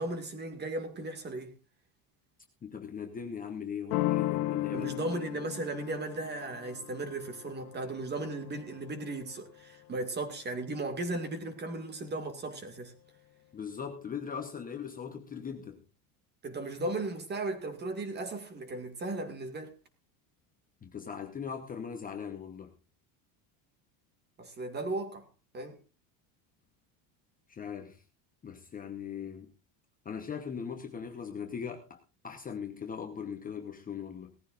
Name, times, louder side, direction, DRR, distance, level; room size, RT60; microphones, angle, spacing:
voice 1, 0.0-1.6 4.7-12.9 16.4-19.8 24.4-25.3 25.5-25.8, right 2 dB, 20° right, 2.1 m, -36 dB
voice 2, 2.6-4.9 13.5-15.8 20.8-22.7 27.5-28.0 28.4-29.5 30.0-34.3, left 7 dB, 20° left, 1.0 m, -39 dB
sound 1, 3.9-9.5, left 18 dB, 90° left, 1.3 m, -36 dB
18.5 x 14.5 x 2.5 m
cardioid pair, 165°, 47 cm